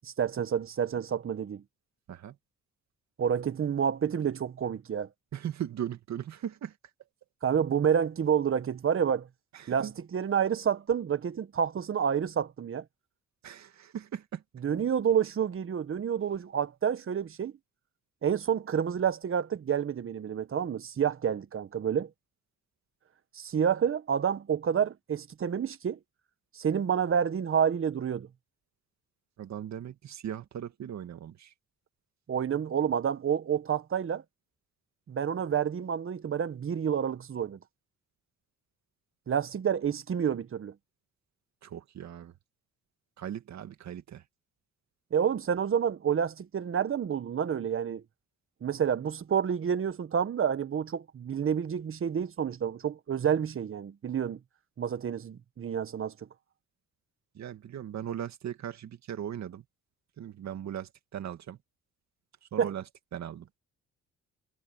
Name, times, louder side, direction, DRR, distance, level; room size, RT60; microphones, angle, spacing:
voice 1, 0.0-1.6 3.2-5.1 7.4-9.3 9.7-12.8 14.6-17.5 18.2-22.1 23.3-26.0 26.5-28.3 32.3-34.2 35.1-37.6 39.3-40.7 45.1-48.0 48.6-54.4 54.8-56.1 62.6-62.7, right 8 dB, 45° right, 1.4 m, -29 dB
voice 2, 5.3-6.8 9.5-9.9 13.4-14.4 29.4-31.5 41.6-42.3 43.2-44.2 57.3-59.6 60.2-61.6 62.5-62.8 63.1-63.5, right 10 dB, 65° right, 2.3 m, -38 dB
cardioid pair, 90°, 30 cm